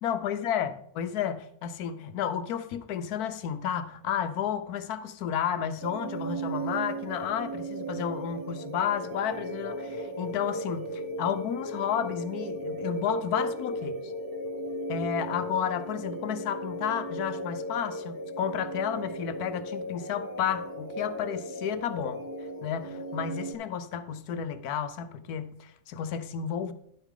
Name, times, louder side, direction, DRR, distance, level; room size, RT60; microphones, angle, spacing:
voice 1, 0.0-14.1 14.9-22.2 22.6-26.7, left 8 dB, 85° left, 1.2 m, -32 dB
sound 1, 5.8-23.5, right 1 dB, 20° right, 0.6 m, -36 dB
10.5 x 8.1 x 3.7 m
omnidirectional pair, 1.6 m